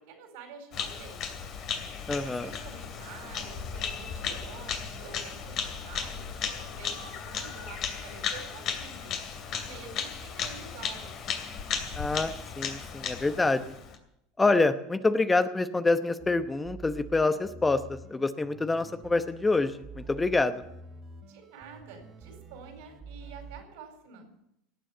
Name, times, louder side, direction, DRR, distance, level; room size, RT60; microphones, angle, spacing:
voice 1, 0.1-1.2 2.2-6.2 6.5-9.1 9.6-11.2 21.3-24.3, right 5 dB, 70° right, 5 dB, 4.5 m, -48 dB
Bird vocalization bird call bird song, 0.7-14.0, left 7 dB, 50° left, 2.7 m, -35 dB
voice 2, 2.1-2.5 12.0-13.7 14.4-20.6, left 3 dB, 15° left, 11 dB, 0.9 m, -26 dB
sound 1, 16.2-23.6, right 4 dB, 40° right, 2.7 m, -47 dB
18.5 x 7.6 x 8.0 m, 0.80 s
hypercardioid pair, 85°, 0 cm